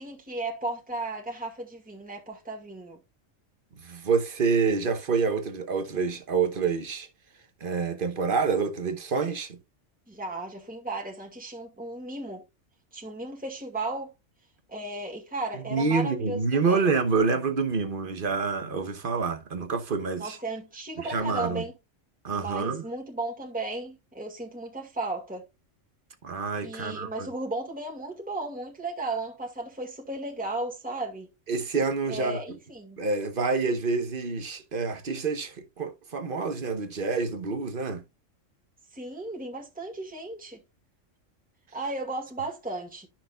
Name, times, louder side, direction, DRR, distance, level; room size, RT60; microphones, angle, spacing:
voice 1, 0.0-3.0 10.1-12.4 12.9-14.1 14.7-16.9 20.2-21.7 22.4-25.5 26.6-31.3 32.1-33.0 38.9-40.6 41.7-43.1, right 2 dB, 5° right, 2.0 m, -35 dB
voice 2, 3.8-7.1 7.6-9.6 15.5-20.4 21.0-21.7 22.2-22.8 26.2-27.3 31.5-32.4 33.0-38.0, right 4 dB, 45° right, 1.2 m, -27 dB
12.5 x 5.9 x 2.4 m
omnidirectional pair, 1.3 m